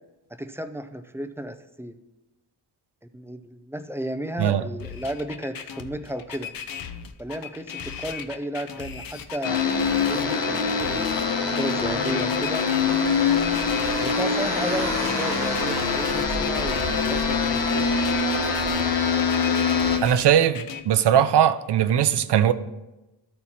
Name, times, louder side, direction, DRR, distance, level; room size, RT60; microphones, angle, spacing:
voice 1, 0.3-2.0 3.1-6.5 7.2-9.6 10.1-12.7 14.0-17.8, right 1 dB, 5° right, 0.4 m, -33 dB
sound 1, 4.8-20.8, left 7 dB, 55° left, 0.7 m, -38 dB
sound 2, 9.4-20.0, left 5 dB, 80° left, 1.2 m, -24 dB
Car, 12.9-18.7, right 2 dB, 40° right, 1.2 m, -35 dB
voice 2, 20.0-22.5, right 9 dB, 70° right, 0.6 m, -20 dB
13.0 x 4.4 x 4.2 m
wide cardioid pair, 120°, 43 cm